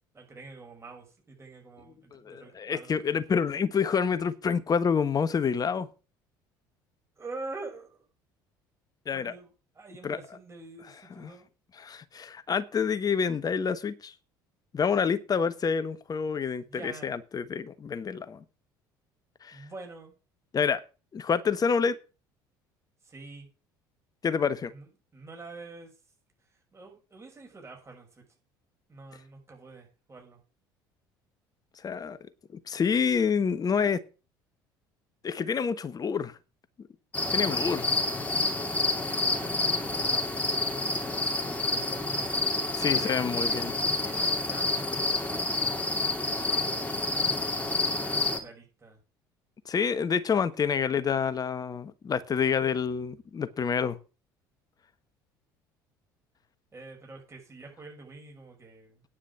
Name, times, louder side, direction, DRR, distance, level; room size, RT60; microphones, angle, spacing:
voice 1, 0.1-3.0 7.2-8.0 9.1-11.5 16.6-17.1 19.5-20.1 23.0-23.5 24.7-24.9 25.1-25.9 26.5-28.2 28.9-30.4 38.3-40.5 41.6-42.6 42.9-43.7 44.0-48.0 48.4-49.0 56.7-59.0, right 3 dB, 25° right, 6.2 m, -46 dB
voice 2, 2.1-5.9 9.1-9.3 10.0-10.2 11.2-11.3 11.8-14.1 14.7-18.4 19.4-19.6 20.5-20.8 21.1-22.0 24.2-24.7 31.8-32.2 32.5-34.0 35.2-36.4 37.3-37.9 42.8-43.7 49.6-54.0, left 6 dB, 35° left, 1.3 m, -28 dB
sound 1, 37.1-48.4, left 2 dB, 15° left, 2.8 m, -28 dB
9.8 x 6.2 x 8.6 m
hypercardioid pair, 65°, 11 cm